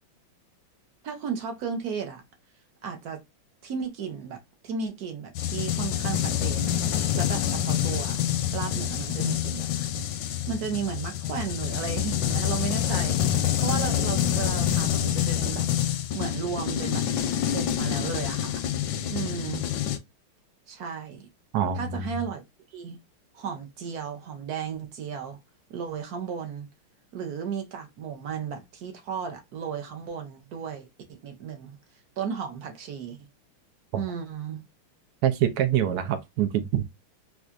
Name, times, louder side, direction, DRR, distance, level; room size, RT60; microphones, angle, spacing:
voice 1, 1.0-2.2 2.8-3.2 3.6-4.4 4.6-6.7 7.1-8.2 8.5-10.1 10.5-13.2 13.6-15.7 16.1-17.0 17.4-18.7 19.1-19.6 20.7-21.3 21.7-22.4 22.7-23.0 23.3-25.4 25.7-26.7 27.1-31.8 32.2-33.3 33.9-34.6, right 6 dB, 55° right, 1.2 m, -34 dB
sound 1, 5.3-20.0, left 10 dB, 75° left, 1.1 m, -27 dB
voice 2, 21.5-22.1 33.9-34.0 35.2-36.8, right 10 dB, 85° right, 0.8 m, -25 dB
4.4 x 2.5 x 2.4 m
omnidirectional pair, 2.3 m